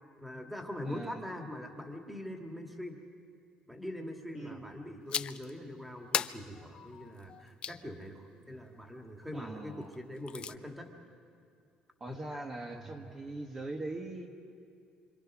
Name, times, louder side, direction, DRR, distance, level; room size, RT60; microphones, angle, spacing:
voice 1, 0.2-3.0 3.7-10.9 12.1-12.4 12.7-13.1, left 1 dB, 5° right, 3 dB, 2.3 m, -43 dB
voice 2, 0.8-1.2 4.3-4.6 9.3-9.9 12.0-14.3, right 2 dB, 25° right, 2 dB, 1.5 m, -41 dB
sound 1, 5.1-5.5 6.1-7.8 9.9-10.6, left 8 dB, 40° left, 0.5 m, -36 dB
26.5 x 25.5 x 6.2 m, 2.4 s
cardioid pair, 130°, 2 cm